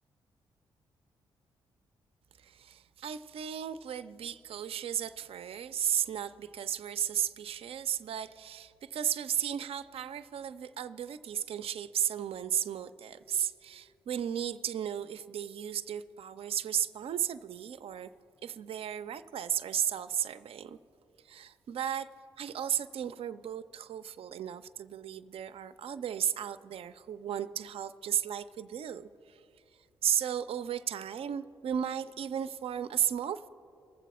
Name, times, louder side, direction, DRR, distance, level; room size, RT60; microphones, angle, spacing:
voice 1, 2.4-18.1 18.4-20.8 21.3-22.1 22.4-29.4 30.0-33.5, right 9 dB, 65° right, 12 dB, 0.4 m, -34 dB
21.5 x 7.5 x 4.2 m, 2.6 s
supercardioid pair, 50°, 11 cm